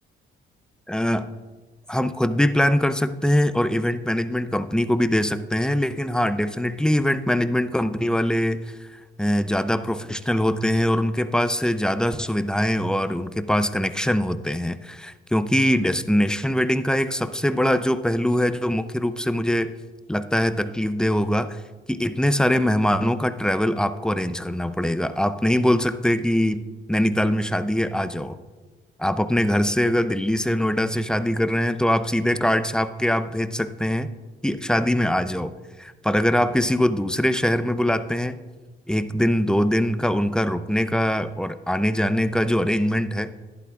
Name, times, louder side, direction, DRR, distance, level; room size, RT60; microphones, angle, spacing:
voice 1, 0.9-1.3 1.9-19.7 20.1-21.6 21.9-28.4 29.0-34.1 34.4-35.5 35.8-38.4 38.9-43.3, equal, 5° left, 12 dB, 0.4 m, -22 dB
11.5 x 11.0 x 2.4 m, 1.3 s
cardioid pair, 90°, 21 cm